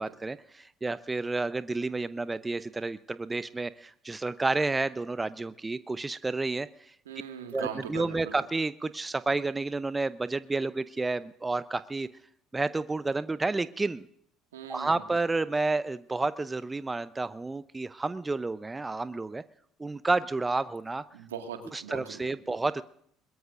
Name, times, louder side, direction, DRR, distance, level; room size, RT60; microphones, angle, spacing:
voice 1, 0.0-6.7 7.5-12.1 12.5-14.1 14.7-19.4 19.8-21.0 21.7-22.8, right 3 dB, 20° right, 15 dB, 0.7 m, -30 dB
voice 2, 7.1-8.3 14.5-15.0 21.1-22.6, right 8 dB, 85° right, 5 dB, 1.9 m, -41 dB
21.5 x 21.5 x 2.6 m, 0.66 s
hypercardioid pair, 60°, 0 cm